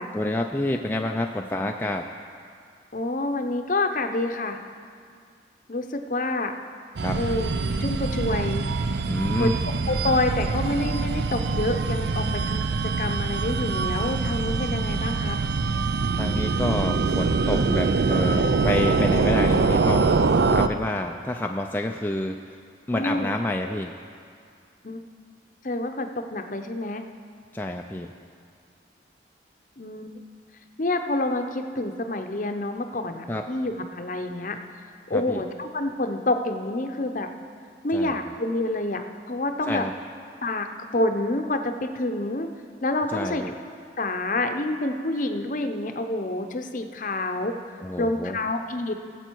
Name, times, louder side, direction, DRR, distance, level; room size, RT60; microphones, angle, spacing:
voice 1, 0.1-2.1 7.0-7.2 9.1-9.5 16.2-22.6 22.9-23.9 27.5-28.1 33.3-33.4 35.1-35.4 37.9-38.3 39.6-39.9 43.1-43.5 47.8-48.4, left 1 dB, 10° left, 2 dB, 0.3 m, -28 dB
voice 2, 2.9-4.6 5.7-6.5 7.1-7.5 7.8-8.6 9.4-9.5 9.9-15.4 22.9-23.3 24.8-25.0 25.6-27.0 29.8-30.1 30.8-34.6 35.1-37.3 37.8-39.8 40.4-40.7 40.9-42.5 42.8-43.4 44.0-47.5 48.0-48.9, left 2 dB, 45° left, 6 dB, 0.7 m, -27 dB
sound 1, 7.0-20.7, right 4 dB, 65° right, 0.4 m, -24 dB
18.5 x 7.8 x 4.6 m, 2.2 s
head